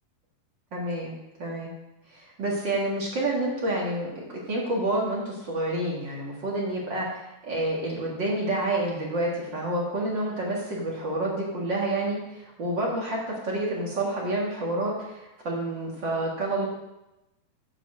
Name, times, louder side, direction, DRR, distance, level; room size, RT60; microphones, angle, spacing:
voice 1, 0.7-1.7 2.1-16.7, right 1 dB, 40° right, -4 dB, 1.8 m, -29 dB
8.2 x 7.1 x 6.0 m, 0.94 s
omnidirectional pair, 4.2 m